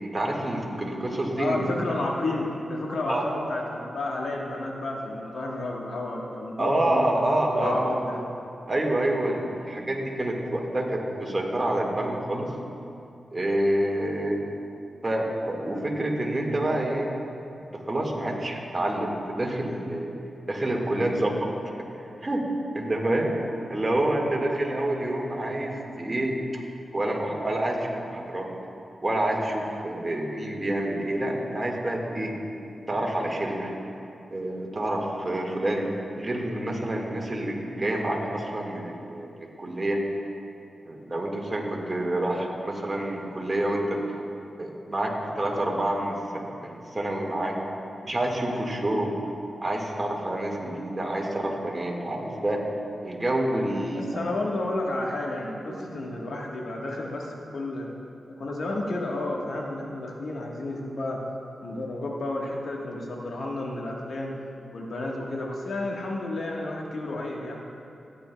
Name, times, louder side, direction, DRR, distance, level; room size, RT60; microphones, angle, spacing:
voice 1, 0.0-1.6 3.1-3.3 6.6-7.8 8.7-12.5 13.3-14.4 15.0-17.1 17.7-20.1 20.5-21.5 22.2-22.5 22.7-23.3 23.7-26.4 26.9-28.5 29.0-32.3 32.9-33.7 34.3-35.8 36.2-40.0 40.9-44.0 44.6-47.6 48.0-49.1 49.6-52.6 53.0-54.2 55.7-55.8, right 1 dB, 30° right, -1 dB, 1.7 m, -27 dB
voice 2, 1.4-7.1 7.5-8.2 53.9-57.9 58.3-61.2 61.6-64.3 64.7-67.6, left 2 dB, 75° left, -1 dB, 1.4 m, -31 dB
15.0 x 9.8 x 2.3 m, 2.6 s
cardioid pair, 60°, 0 cm